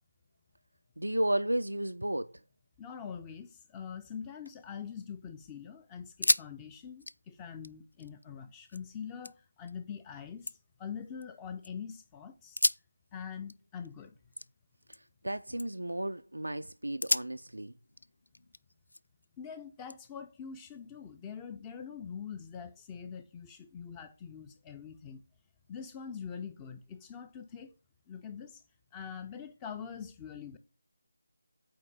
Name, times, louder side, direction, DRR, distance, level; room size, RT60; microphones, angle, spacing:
voice 1, 1.0-2.4 14.9-17.7, right 1 dB, 80° right, 0.3 m, -33 dB
voice 2, 2.8-12.6 13.1-14.1 19.4-25.2 25.7-27.7 28.1-28.6 28.9-30.6, left 7 dB, 15° left, 0.5 m, -44 dB
sound 1, 4.2-5.2 5.6-5.7 6.0-6.5 6.8-8.8 9.2-9.8 10.2-11.7 12.4-15.3 15.6-16.0 16.4-16.5 17.0-19.3 19.9-21.1, left 1 dB, 75° left, 0.3 m, -36 dB
8.6 x 3.2 x 5.3 m
figure-of-eight pair, 160°, 0 cm